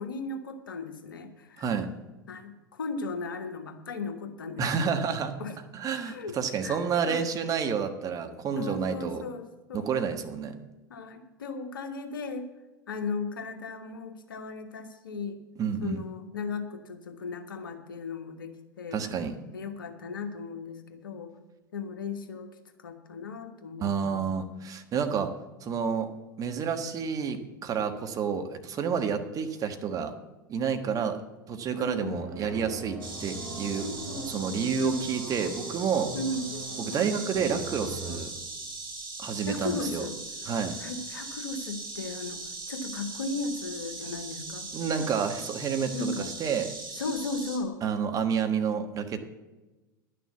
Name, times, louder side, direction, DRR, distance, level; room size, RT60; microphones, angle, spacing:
voice 1, 0.0-1.7 2.3-5.0 5.4-5.6 6.0-6.4 6.6-7.2 8.6-10.0 10.9-12.5 12.9-15.4 15.8-19.0 19.5-21.3 21.7-22.5 22.8-24.2 24.9-25.1 31.8-32.2 33.8-35.1 36.1-36.5 36.9-37.1 39.5-40.2 40.8-42.4 42.7-44.7 45.9-46.3 46.9-47.8, left 3 dB, 70° left, 7 dB, 1.4 m, -36 dB
voice 2, 1.6-1.9 4.6-5.3 5.7-9.2 9.7-10.5 15.6-16.0 18.9-19.3 23.8-25.3 25.6-26.1 26.4-30.1 30.5-31.2 31.5-33.9 34.3-36.1 36.9-38.3 39.2-40.1 40.4-40.8 44.7-46.7 47.8-49.2, right 6 dB, 30° right, 7 dB, 1.3 m, -29 dB
sound 1, 32.1-38.2, right 3 dB, 15° right, 2.8 m, -41 dB
Insect, 33.0-47.6, right 3 dB, 70° right, 3.2 m, -40 dB
11.0 x 6.7 x 8.1 m, 1.1 s
figure-of-eight pair, 90°, 12 cm